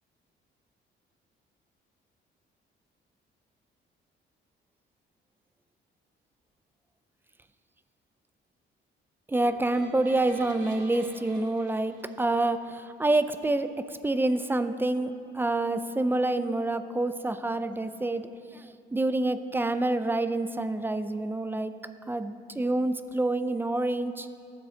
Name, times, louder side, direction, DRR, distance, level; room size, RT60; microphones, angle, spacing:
voice 1, 9.3-21.7 22.1-24.3, right 2 dB, 10° right, 11 dB, 0.4 m, -27 dB
sound 1, 9.4-12.7, equal, 40° right, 2.5 m, -48 dB
15.0 x 7.4 x 2.8 m, 2.6 s
cardioid pair, 90°, 20 cm